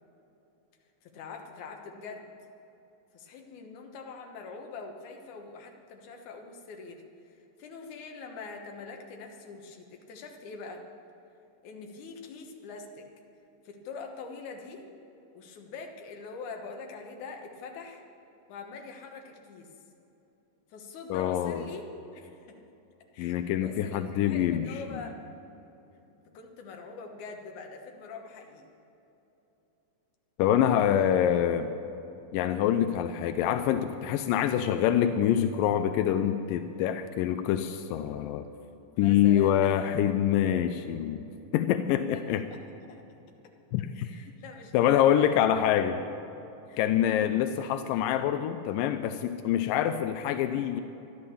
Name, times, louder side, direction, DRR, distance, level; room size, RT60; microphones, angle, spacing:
voice 1, 1.0-2.3 3.1-7.0 7.6-10.9 11.6-13.1 13.6-14.8 15.3-18.0 18.5-19.7 20.7-21.8 22.1-22.6 23.1-25.1 26.3-28.7 38.9-39.7 40.1-40.2 42.1-42.6 42.9-43.0 43.9-45.7 46.7-47.3, left 4 dB, 65° left, 2 dB, 2.6 m, -44 dB
voice 2, 21.1-21.6 23.2-24.7 30.4-31.7 32.3-38.4 39.0-41.2 41.5-42.5 43.7-44.1 44.7-46.0 46.8-50.8, left 10 dB, 85° left, 8 dB, 2.3 m, -25 dB
13.0 x 12.0 x 7.0 m, 3.0 s
omnidirectional pair, 3.8 m